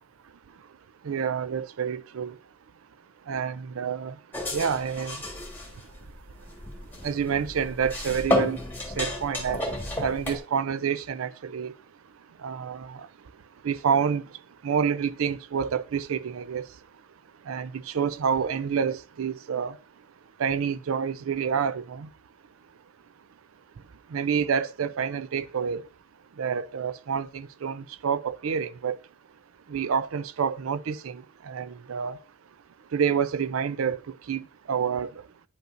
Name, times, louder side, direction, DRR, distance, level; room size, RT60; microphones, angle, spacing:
voice 1, 1.0-2.3 3.3-4.2 4.5-5.2 7.0-8.6 9.0-11.7 12.4-13.0 13.6-14.2 14.6-16.7 17.5-19.8 20.4-22.1 24.1-25.8 26.4-29.0 29.7-32.2 32.9-34.0 34.3-35.1, right 7 dB, 80° right, 0.4 m, -28 dB
sound 1, 4.3-10.4, left 1 dB, 10° left, 1.5 m, -32 dB
8.9 x 5.4 x 2.5 m
head